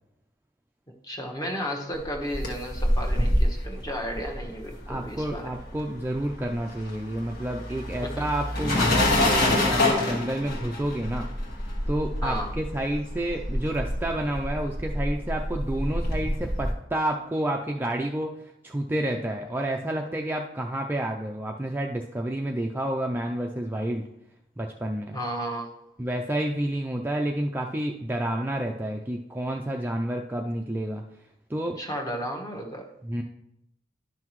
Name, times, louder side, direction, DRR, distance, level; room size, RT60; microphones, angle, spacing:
voice 1, 1.0-5.6 8.0-8.3 12.2-12.5 25.1-25.8 31.8-32.9, equal, 20° left, 1 dB, 1.1 m, -33 dB
sound 1, 2.1-5.7 6.0-16.7, left 1 dB, 55° left, 1.5 m, -27 dB
voice 2, 4.9-11.3 11.9-18.3 18.6-24.0 24.6-25.2 26.0-31.0 31.5-31.8 33.0-33.2, right 1 dB, 10° right, 1 dB, 0.4 m, -29 dB
11.5 x 5.7 x 3.1 m, 0.79 s
head